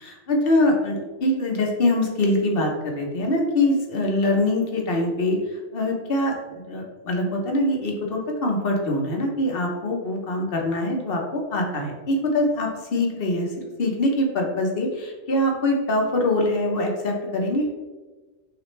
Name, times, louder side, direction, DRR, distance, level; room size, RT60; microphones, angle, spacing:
voice 1, 0.0-13.5 13.8-17.6, left 1 dB, 55° left, 0 dB, 1.0 m, -23 dB
5.9 x 2.5 x 3.2 m, 1.2 s
omnidirectional pair, 1.2 m